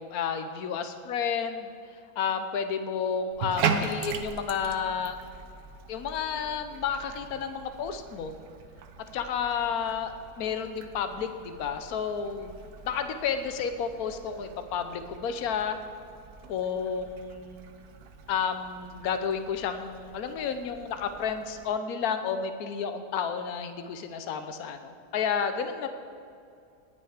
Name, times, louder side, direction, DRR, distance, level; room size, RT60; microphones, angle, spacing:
voice 1, 0.0-1.7 2.2-5.2 5.9-8.3 9.1-12.5 12.8-15.8 16.5-17.6 18.3-25.9, left 7 dB, 70° left, 8 dB, 1.3 m, -31 dB
Bathtub (filling or washing), 3.3-21.7, right 6 dB, 75° right, 1.3 m, -39 dB
19.0 x 6.9 x 5.0 m, 2.5 s
omnidirectional pair, 1.7 m